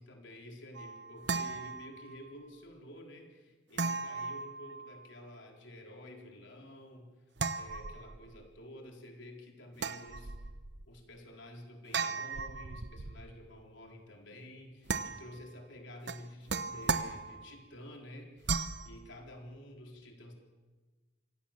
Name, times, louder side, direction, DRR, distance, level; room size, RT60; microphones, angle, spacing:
voice 1, 0.0-7.2 7.6-10.3 10.9-18.5 18.8-20.4, left 1 dB, 70° left, 2 dB, 4.2 m, -50 dB
sound 1, 0.7-2.3 3.8-5.2 7.4-8.4 9.8-10.8 11.9-13.3 14.9-15.5 16.1-17.6 18.4-18.9, right 4 dB, 55° right, 0.9 m, -37 dB
26.0 x 17.0 x 7.5 m, 1.3 s
head